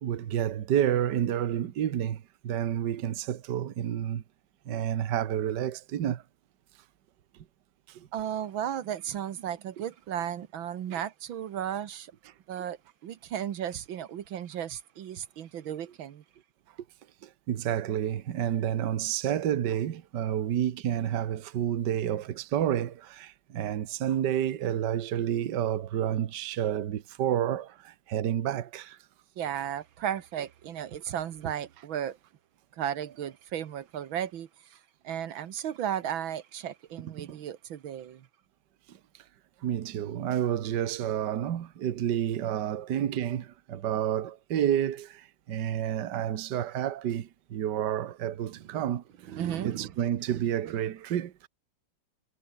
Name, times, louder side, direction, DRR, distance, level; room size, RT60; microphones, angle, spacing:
voice 1, 0.0-4.2 4.6-6.2 7.9-8.1 10.9-11.0 17.2-29.0 37.2-37.4 38.9-39.0 39.6-49.0 49.6-51.5, right 10 dB, 60° right, 1.7 m, -30 dB
voice 2, 8.1-12.1 12.5-16.2 29.4-32.2 32.7-38.3 48.5-48.7 49.3-49.9 50.3-50.7, right 10 dB, 80° right, 2.0 m, -35 dB
omnidirectional pair, 2.1 m